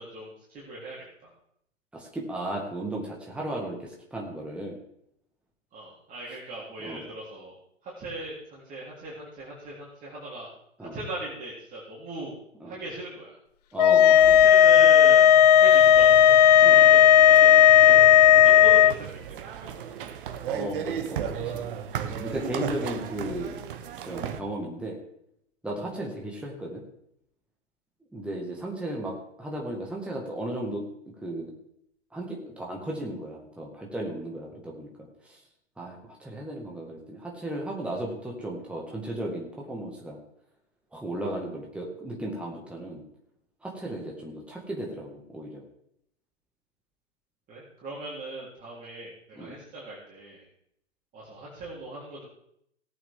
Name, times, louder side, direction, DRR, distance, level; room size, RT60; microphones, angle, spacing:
voice 1, 0.0-1.3 5.7-7.5 7.8-10.5 10.9-12.3 12.6-13.4 14.1-15.3 15.6-16.4 16.7-19.1 19.4-19.8 47.5-50.5 51.1-52.3, right 1 dB, 20° right, -7 dB, 3.8 m, -39 dB
voice 2, 1.9-4.8 6.8-7.0 10.8-11.0 12.6-12.8 13.7-14.4 16.6-16.8 20.5-21.6 22.0-23.6 24.0-25.0 25.6-26.8 28.1-30.8 31.2-31.5 32.1-35.4 35.8-40.2 40.9-43.0 43.6-45.6 49.4-49.5, right 1 dB, 5° right, -1 dB, 2.0 m, -35 dB
sound 1, 13.8-18.9, left 10 dB, 35° left, 0.5 m, -15 dB
sound 2, 14.2-24.4, right 8 dB, 45° right, 1.2 m, -36 dB
18.5 x 8.6 x 3.8 m, 0.74 s
figure-of-eight pair, 115°, 37 cm